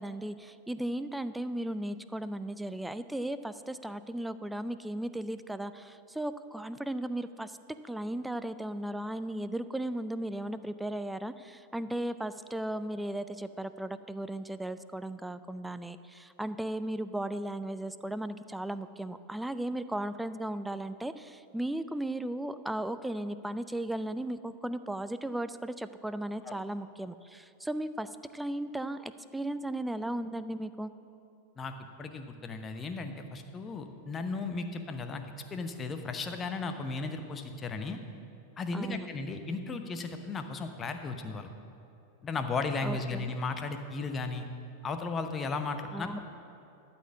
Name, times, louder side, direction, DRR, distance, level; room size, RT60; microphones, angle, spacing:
voice 1, 0.0-7.6 7.8-30.9 38.7-39.1 42.8-43.4 45.9-46.2, right 1 dB, 5° right, 12 dB, 0.3 m, -36 dB
voice 2, 31.6-35.3 35.5-38.0 38.6-41.5 42.2-44.5 44.8-46.1, left 3 dB, 20° left, 7 dB, 0.8 m, -35 dB
12.5 x 4.4 x 8.0 m, 2.7 s
figure-of-eight pair, 90°, 0 cm